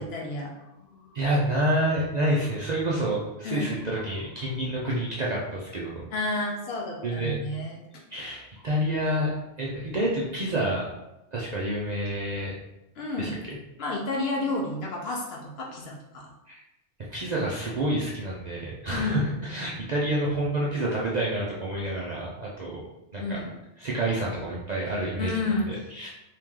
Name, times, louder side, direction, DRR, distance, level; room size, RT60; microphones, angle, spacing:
voice 1, 0.0-1.1 3.4-3.8 6.1-7.7 13.0-13.3 13.8-16.3 18.9-19.2 23.2-23.5 25.2-25.7, left 2 dB, 60° left, -1 dB, 0.8 m, -31 dB
voice 2, 1.1-6.0 7.0-7.4 8.1-9.3 9.6-10.9 11.3-12.5 13.2-13.4 16.5-16.6 17.1-22.8 23.1-23.4 23.8-26.1, right 1 dB, 50° right, -5 dB, 0.5 m, -28 dB
3.0 x 2.8 x 3.6 m, 0.92 s
omnidirectional pair, 1.3 m